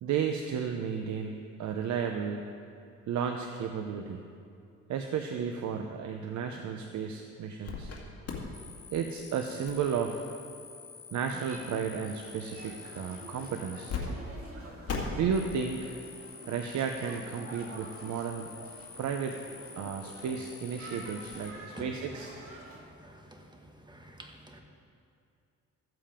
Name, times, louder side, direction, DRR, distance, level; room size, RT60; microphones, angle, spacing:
voice 1, 0.0-2.4 3.1-4.2 4.9-7.9 8.9-10.3 11.1-14.0 15.2-16.0 16.5-18.5 18.9-19.4 19.8-22.3, right 7 dB, 70° right, 4 dB, 0.8 m, -33 dB
sound 1, 7.6-8.0 8.3-14.0 14.3-14.4 14.9-21.5, left 6 dB, 50° left, 2.1 m, -43 dB
sound 2, 11.5-22.8, right 1 dB, 45° right, 2.3 m, -49 dB
voice 2, 23.0-23.4 23.9-24.6, right 1 dB, 15° right, 2 dB, 1.4 m, -48 dB
15.0 x 7.6 x 5.1 m, 2.5 s
cardioid pair, 90°, 30 cm